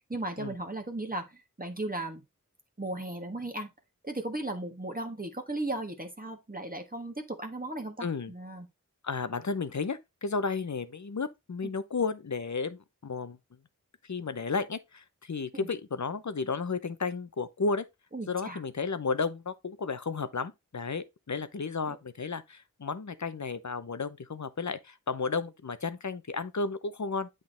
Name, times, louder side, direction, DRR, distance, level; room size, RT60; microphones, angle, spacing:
voice 1, 0.1-2.2 2.8-3.7 4.0-8.7 15.5-15.7 18.1-18.6 21.9-22.0, right 2 dB, 25° right, 1.4 m, -36 dB
voice 2, 8.0-8.3 9.0-13.4 14.0-17.8 18.3-27.3, left 4 dB, 55° left, 0.8 m, -33 dB
8.5 x 3.9 x 3.9 m
wide cardioid pair, 45°, 33 cm